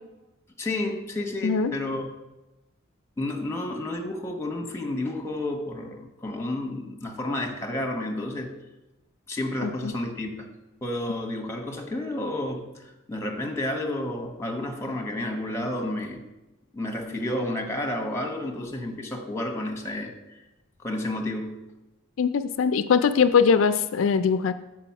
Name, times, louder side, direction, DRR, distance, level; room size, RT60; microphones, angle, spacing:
voice 1, 0.6-2.1 3.2-8.5 9.3-10.3 10.8-16.2 16.7-20.1 20.8-21.5, left 1 dB, 15° left, 3 dB, 1.0 m, -31 dB
voice 2, 22.2-24.5, left 6 dB, 90° left, 11 dB, 0.4 m, -21 dB
6.9 x 4.8 x 5.8 m, 1.0 s
head